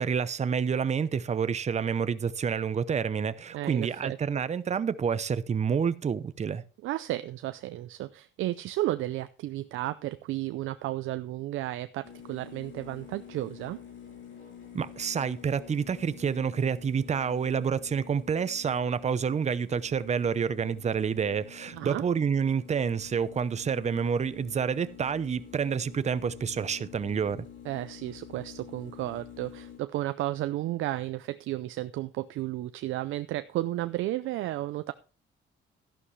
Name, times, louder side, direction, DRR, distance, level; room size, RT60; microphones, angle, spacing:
voice 1, 0.0-6.6 14.7-27.5, right 6 dB, 35° right, 0.7 m, -28 dB
voice 2, 3.5-4.2 6.8-13.8 21.7-22.0 27.6-34.9, right 15 dB, 85° right, 0.5 m, -33 dB
sound 1, 12.0-29.8, left 8 dB, 75° left, 7.2 m, -48 dB
12.5 x 11.0 x 3.2 m
cardioid pair, 90°, 20 cm